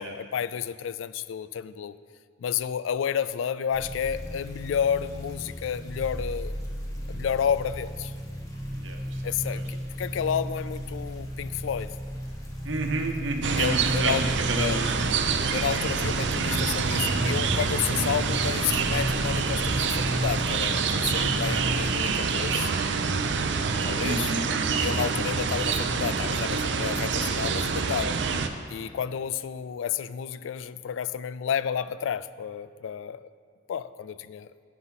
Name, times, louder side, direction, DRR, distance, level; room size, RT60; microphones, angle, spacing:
voice 1, 0.0-2.0 2.4-6.5 7.1-8.1 9.2-11.9 13.6-14.3 14.6-14.8 15.5-22.7 23.8-24.3 24.7-28.2 28.7-33.3 33.7-34.5, left 8 dB, 85° left, 15 dB, 0.3 m, -31 dB
sound 1, 3.7-22.0, equal, 15° left, 1.2 m, -34 dB
voice 2, 12.6-14.8 21.5-21.8 24.0-24.9, right 3 dB, 85° right, 4 dB, 1.1 m, -30 dB
sound 2, 13.4-28.5, right 5 dB, 65° right, 0.6 m, -27 dB
15.5 x 5.6 x 4.1 m, 2.1 s
head